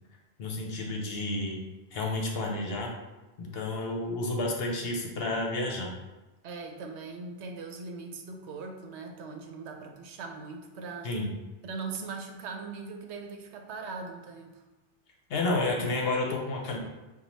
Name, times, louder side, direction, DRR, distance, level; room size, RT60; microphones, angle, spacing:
voice 1, 0.4-1.6 1.9-2.9 3.4-5.9 11.0-11.3 15.3-16.8, left 2 dB, 60° left, 0 dB, 0.9 m, -30 dB
voice 2, 6.4-11.1 11.6-14.6, right 4 dB, 75° right, 3 dB, 0.9 m, -40 dB
5.4 x 2.3 x 3.0 m, 1.1 s
omnidirectional pair, 1.2 m